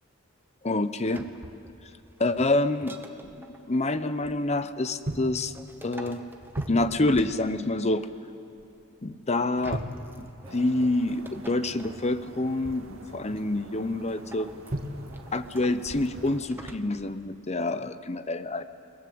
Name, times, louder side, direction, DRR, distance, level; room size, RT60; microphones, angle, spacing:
voice 1, 0.6-1.3 2.2-3.0 3.3-5.5 5.8-6.2 6.7-8.1 9.0-9.8 10.5-14.5 15.3-18.6, left 2 dB, 30° left, 12 dB, 0.8 m, -27 dB
sound 1, 1.0-3.7 5.2-8.0 9.4-12.0 14.1-17.2 17.5-17.6, right 1 dB, 10° right, 1.2 m, -48 dB
sound 2, 1.4-1.7 2.3-2.4 3.2-3.5 4.2-4.8 5.0-5.4 5.8-6.0 6.5-7.2 8.5-8.8 9.1-9.2 9.7-10.9 12.5-13.5 14.7-15.4 15.8-16.3 16.8-17.0, right 1 dB, 45° right, 1.7 m, -37 dB
sound 3, 10.5-16.4, right 2 dB, 70° right, 2.2 m, -47 dB
29.0 x 19.0 x 7.8 m, 2.6 s
head